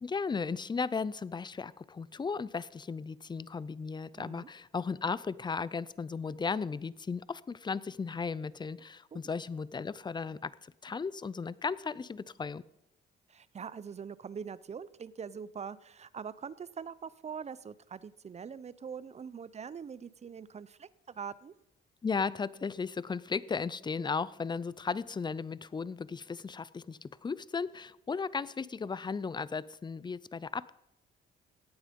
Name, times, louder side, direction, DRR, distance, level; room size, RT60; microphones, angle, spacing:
voice 1, 0.0-12.6 22.0-30.7, left 5 dB, 20° left, 19 dB, 0.5 m, -35 dB
voice 2, 4.2-4.5 9.1-9.2 13.3-21.5, right 6 dB, 35° right, 18 dB, 0.6 m, -43 dB
17.0 x 8.9 x 5.3 m, 0.83 s
cardioid pair, 90°, 20 cm